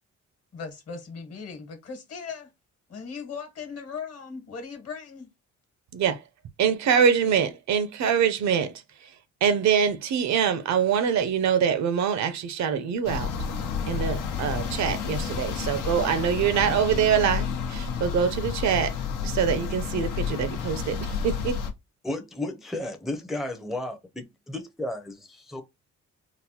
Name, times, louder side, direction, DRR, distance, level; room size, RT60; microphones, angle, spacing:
voice 1, 0.5-2.5 2.9-5.3, left 5 dB, 55° left, 1.2 m, -38 dB
voice 2, 6.6-8.7 9.0-9.1 9.4-13.3 13.9-19.0 19.2-21.6, right 7 dB, 65° right, 0.6 m, -24 dB
sound 1, 13.0-21.7, left 6 dB, 90° left, 0.8 m, -30 dB
voice 3, 22.0-25.6, left 1 dB, ahead, 0.5 m, -33 dB
3.8 x 2.1 x 2.8 m
cardioid pair, 90°, 30 cm